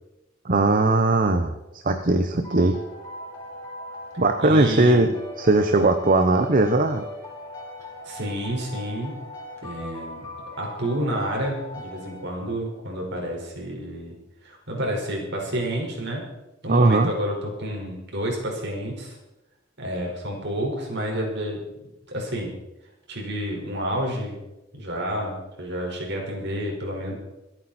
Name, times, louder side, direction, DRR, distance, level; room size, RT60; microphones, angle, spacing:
voice 1, 0.4-1.5 1.8-2.8 4.2-5.1 5.4-7.0 16.7-17.1, right 2 dB, 45° right, 6 dB, 1.0 m, -19 dB
sound 1, 2.4-12.8, equal, 15° left, 6.0 m, -40 dB
voice 2, 4.4-5.1 8.0-9.1 9.6-10.2 10.6-14.2 14.4-16.2 16.6-19.2 19.8-21.6 22.1-22.6 23.1-24.4 24.7-27.1, equal, 60° right, 0 dB, 5.0 m, -29 dB
25.5 x 9.0 x 4.4 m, 0.96 s
head